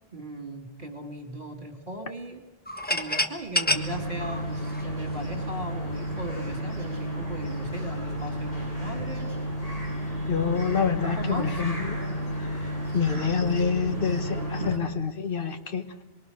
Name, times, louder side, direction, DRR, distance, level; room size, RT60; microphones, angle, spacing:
voice 1, 0.1-2.4 2.9-9.5 11.1-11.6 14.6-14.7, right 1 dB, 55° right, 4 dB, 3.5 m, -38 dB
sound 1, 2.7-5.4, left 1 dB, 10° left, 1.2 m, -28 dB
sound 2, 3.7-14.8, equal, 35° left, 7.3 m, -32 dB
voice 2, 10.3-12.0 12.9-16.0, left 6 dB, 60° left, 8 dB, 1.7 m, -27 dB
25.5 x 23.0 x 6.6 m, 1.0 s
omnidirectional pair, 1.0 m